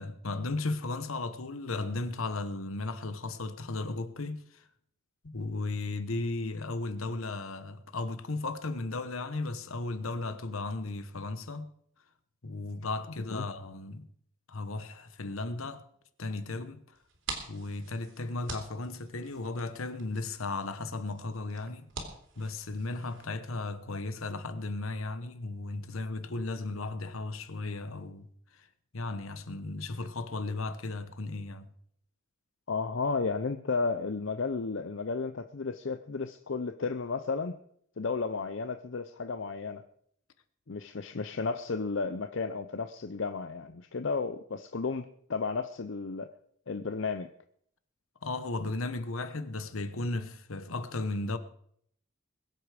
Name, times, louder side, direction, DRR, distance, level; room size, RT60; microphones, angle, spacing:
voice 1, 0.0-4.6 5.2-11.7 12.4-14.1 14.5-15.8 16.2-16.8 17.5-21.9 22.4-28.3 28.5-28.7 28.9-31.7 48.2-51.4, left 2 dB, 75° left, 1.1 m, -35 dB
sound 1, 16.9-23.2, right 4 dB, 60° right, 3.0 m, -45 dB
voice 2, 32.7-37.6 38.0-39.8 40.7-46.3 46.7-47.3, left 4 dB, 60° left, 0.6 m, -33 dB
21.5 x 8.1 x 5.0 m
head